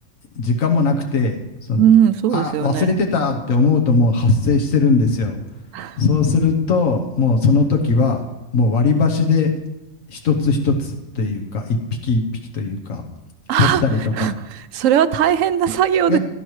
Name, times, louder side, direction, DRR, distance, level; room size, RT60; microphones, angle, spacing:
voice 1, 0.3-1.3 1.7-1.9 2.3-5.4 6.0-8.2 8.5-9.5 10.1-11.8 12.0-12.2 12.5-13.0 13.6-14.3 16.1-16.2, left 4 dB, 85° left, 3 dB, 1.4 m, -18 dB
voice 2, 1.8-2.9 5.7-6.0 13.5-13.8 14.2-16.2, right 9 dB, 80° right, 13 dB, 1.0 m, -18 dB
17.0 x 12.0 x 3.2 m, 0.99 s
omnidirectional pair, 1.4 m